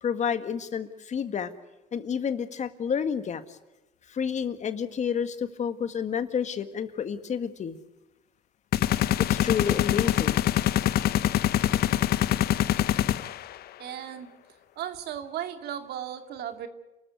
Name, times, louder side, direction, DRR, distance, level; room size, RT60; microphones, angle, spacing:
voice 1, 0.0-1.5 1.9-3.6 4.1-7.8 9.2-10.4, left 7 dB, 45° left, 10 dB, 1.7 m, -30 dB
sound 1, 8.7-13.6, left 12 dB, 65° left, 0.9 m, -24 dB
voice 2, 13.8-14.3 14.8-16.7, right 10 dB, 75° right, 8 dB, 2.5 m, -35 dB
29.5 x 14.0 x 9.4 m, 1.0 s
cardioid pair, 110°, 17 cm